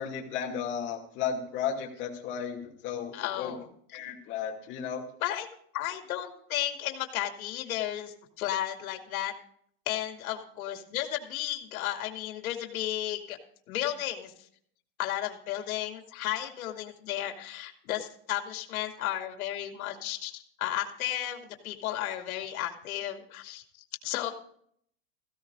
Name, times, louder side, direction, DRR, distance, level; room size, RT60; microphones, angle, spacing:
voice 1, 0.0-3.5 3.9-5.0, left 7 dB, 25° left, 1 dB, 2.4 m, -34 dB
voice 2, 3.1-3.7 5.2-5.5 5.7-9.3 9.9-13.4 13.7-14.3 15.0-23.6 24.0-24.3, left 13 dB, 70° left, 4 dB, 2.5 m, -33 dB
17.5 x 16.0 x 2.5 m, 0.63 s
supercardioid pair, 180°, 44 cm